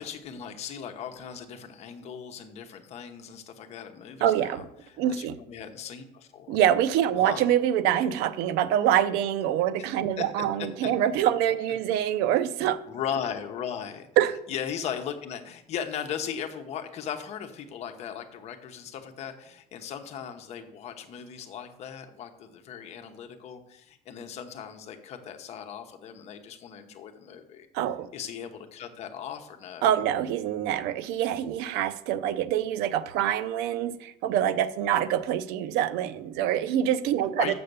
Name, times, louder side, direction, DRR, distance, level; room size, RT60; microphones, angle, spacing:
voice 1, 0.0-6.6 7.2-7.5 10.2-10.7 11.0-11.1 12.8-14.1 14.5-27.7 28.1-29.9 37.4-37.5, left 8 dB, 45° left, 6 dB, 0.9 m, -38 dB
voice 2, 4.2-4.7 5.0-5.3 6.5-12.8 14.2-14.4 27.7-28.1 29.8-37.5, right 10 dB, 85° right, 14 dB, 0.6 m, -25 dB
7.0 x 6.6 x 6.8 m, 0.79 s
cardioid pair, 175°, 16 cm